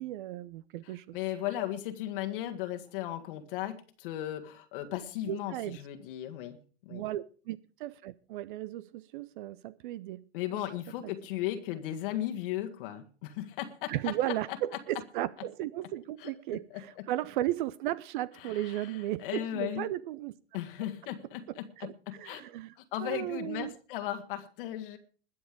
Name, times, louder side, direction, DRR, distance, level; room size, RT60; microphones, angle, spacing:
voice 1, 0.0-1.2 5.3-5.8 6.9-10.2 13.9-20.3 21.8-22.7 23.0-23.7, right 14 dB, 50° right, 0.6 m, -35 dB
voice 2, 0.8-6.6 6.8-7.0 10.3-14.1 16.2-16.3 16.7-17.0 18.4-19.9 20.5-22.4 22.9-25.0, left 13 dB, 55° left, 1.6 m, -36 dB
21.0 x 7.1 x 5.1 m
figure-of-eight pair, 95°, 33 cm